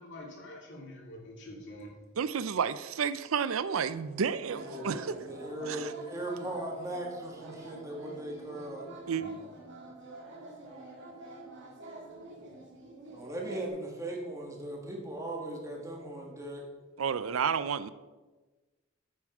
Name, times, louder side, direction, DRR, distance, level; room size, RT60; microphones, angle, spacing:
voice 1, 0.0-1.9 9.2-9.3, left 1 dB, 60° left, -2 dB, 2.4 m, -46 dB
voice 2, 2.2-5.2 5.7-5.9 9.1-9.2 17.0-17.9, right 6 dB, 80° right, 14 dB, 0.5 m, -31 dB
voice 3, 4.5-8.9 13.1-16.7, right 1 dB, 15° right, -1 dB, 1.6 m, -38 dB
sound 1, 4.5-13.7, right 2 dB, 60° right, 2.1 m, -47 dB
8.7 x 6.4 x 4.9 m, 1.2 s
head